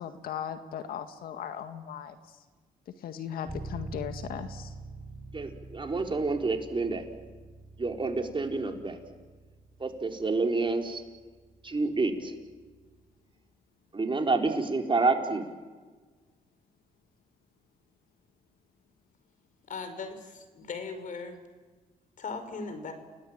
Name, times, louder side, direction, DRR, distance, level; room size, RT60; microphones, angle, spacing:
voice 1, 0.0-2.4 3.0-4.7, left 8 dB, 75° left, 8 dB, 1.8 m, -38 dB
Bass guitar, 3.5-13.2, right 2 dB, 5° left, 6.3 m, -46 dB
voice 2, 5.3-7.0 7.8-9.0 9.8-11.0 11.6-12.3 13.9-15.5, right 3 dB, 35° right, 3 dB, 4.3 m, -28 dB
voice 3, 19.7-21.4 22.2-22.9, left 4 dB, 60° left, 8 dB, 5.4 m, -38 dB
30.0 x 18.0 x 9.1 m, 1.4 s
supercardioid pair, 60°, 15 cm